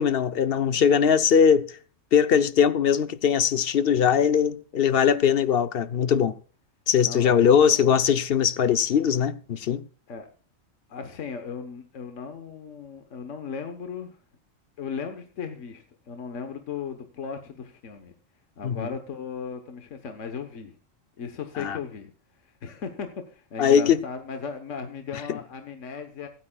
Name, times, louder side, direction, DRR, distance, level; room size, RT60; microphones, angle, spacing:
voice 1, 0.0-1.6 2.1-6.3 6.9-9.8 18.6-18.9 21.6-21.8 23.6-24.0, left 7 dB, 55° left, 0.8 m, -21 dB
voice 2, 7.0-8.0 10.1-10.3 10.9-14.2 14.8-18.1 18.6-20.8 21.2-22.1 22.4-26.3, left 6 dB, 70° left, 1.5 m, -37 dB
24.5 x 9.0 x 2.3 m
omnidirectional pair, 1.3 m